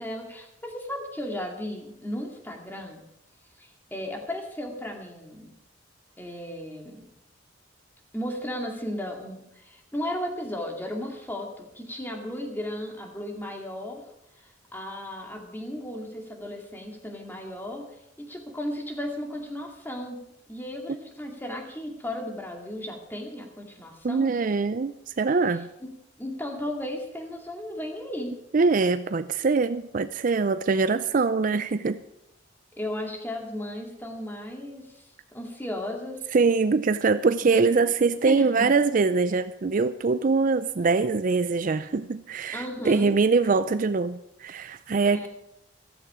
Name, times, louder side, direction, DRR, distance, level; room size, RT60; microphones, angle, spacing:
voice 1, 0.0-3.0 3.6-5.5 6.2-7.1 8.1-14.0 14.4-17.9 18.2-20.2 20.5-24.3 25.8-25.9 26.2-28.4 32.8-35.0 35.3-36.3 37.5-37.8 38.1-38.7 42.5-43.1 45.1-45.3, left 1 dB, 10° left, 2 dB, 2.2 m, -35 dB
voice 2, 24.0-25.7 28.5-32.0 36.3-45.3, right 4 dB, 40° right, 13 dB, 0.4 m, -23 dB
14.5 x 14.0 x 4.9 m, 0.81 s
head